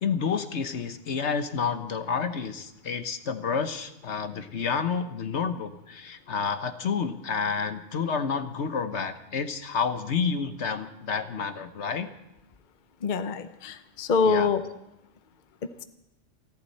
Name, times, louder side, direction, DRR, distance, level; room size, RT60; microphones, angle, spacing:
voice 1, 0.0-12.1 14.2-14.5, left 6 dB, 65° left, 9 dB, 1.3 m, -29 dB
voice 2, 13.0-14.6, left 4 dB, 45° left, 10 dB, 0.9 m, -25 dB
29.0 x 11.5 x 4.2 m, 0.89 s
omnidirectional pair, 1.3 m